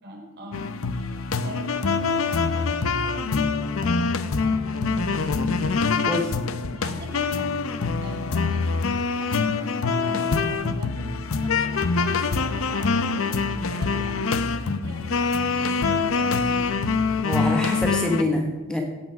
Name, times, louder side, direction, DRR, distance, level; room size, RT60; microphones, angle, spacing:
voice 1, 0.0-5.8 6.7-7.5 8.0-13.4 13.7-16.6, equal, 55° right, -1 dB, 4.2 m, -41 dB
sound 1, 0.5-18.2, left 4 dB, 80° left, 0.7 m, -24 dB
voice 2, 17.2-18.8, left 1 dB, 5° left, 1 dB, 1.2 m, -25 dB
16.5 x 6.2 x 5.9 m, 1.2 s
head